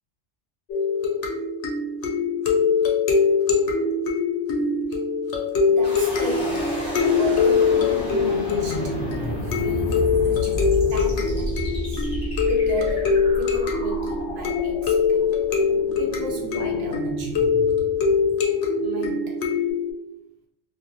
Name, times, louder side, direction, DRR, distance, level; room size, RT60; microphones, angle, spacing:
sound 1, 0.7-19.9, left 5 dB, 80° left, 0.9 m, -23 dB
voice 1, 5.6-6.7 7.0-9.0 9.2-11.6 11.9-12.1 12.5-15.3 16.0-17.5 18.7-19.4, right 2 dB, 65° right, 0 dB, 0.9 m, -35 dB
sound 2, 5.8-18.8, left 2 dB, 30° left, 0.9 m, -31 dB
3.2 x 2.3 x 2.5 m, 0.79 s
omnidirectional pair, 1.2 m